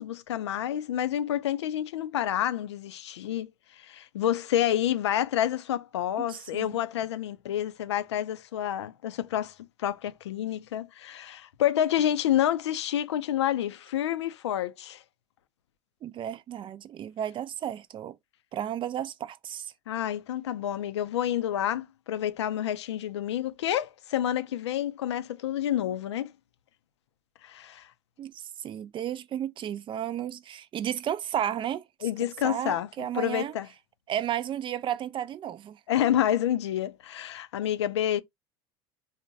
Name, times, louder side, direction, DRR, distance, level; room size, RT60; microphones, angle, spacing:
voice 1, 0.0-15.0 19.9-26.3 27.4-27.9 32.0-32.9 33.1-33.7 35.9-38.2, left 11 dB, 85° left, 0.4 m, -29 dB
voice 2, 6.2-6.7 16.0-18.2 18.5-19.7 28.2-32.1 32.4-33.5 34.1-35.8, right 10 dB, 35° right, 0.4 m, -33 dB
3.9 x 2.1 x 2.6 m
hypercardioid pair, 75°, 14 cm